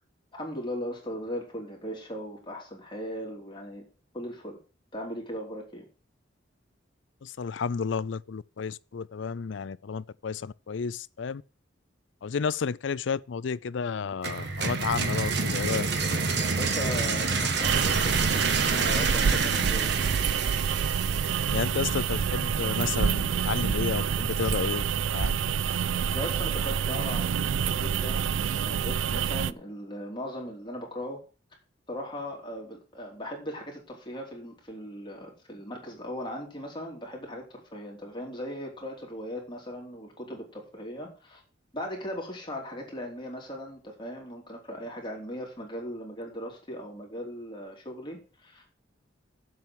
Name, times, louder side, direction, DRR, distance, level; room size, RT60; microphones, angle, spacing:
voice 1, 0.3-3.8 4.1-4.6 4.9-5.9 16.5-20.0 25.7-31.2 31.9-41.4 41.7-48.7, equal, 25° left, 3.2 m, -38 dB
voice 2, 7.2-11.4 12.2-15.9 21.5-24.8 25.1-25.4, left 6 dB, 70° left, 0.4 m, -31 dB
sound 1, 14.2-22.0, right 4 dB, 60° right, 1.4 m, -28 dB
sound 2, 17.6-29.5, right 7 dB, 75° right, 0.4 m, -27 dB
7.7 x 7.0 x 7.6 m
head